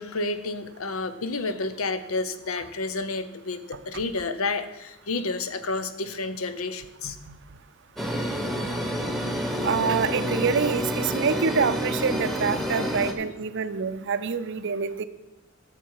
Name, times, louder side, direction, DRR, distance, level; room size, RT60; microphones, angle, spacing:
voice 1, 0.0-7.2, left 3 dB, 80° left, 11 dB, 0.8 m, -30 dB
sound 1, 8.0-13.1, equal, ahead, 1.0 m, -28 dB
voice 2, 9.6-15.0, right 5 dB, 60° right, 12 dB, 0.6 m, -26 dB
12.0 x 6.9 x 4.7 m, 0.99 s
head